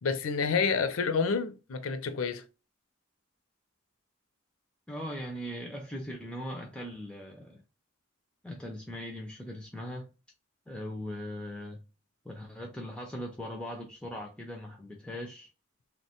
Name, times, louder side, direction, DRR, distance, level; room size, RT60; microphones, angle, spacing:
voice 1, 0.0-2.4, left 5 dB, 85° left, 0.5 m, -29 dB
voice 2, 4.9-7.6 8.4-10.1 10.7-11.8 12.2-15.5, equal, 5° left, 0.3 m, -40 dB
2.9 x 2.1 x 2.8 m
head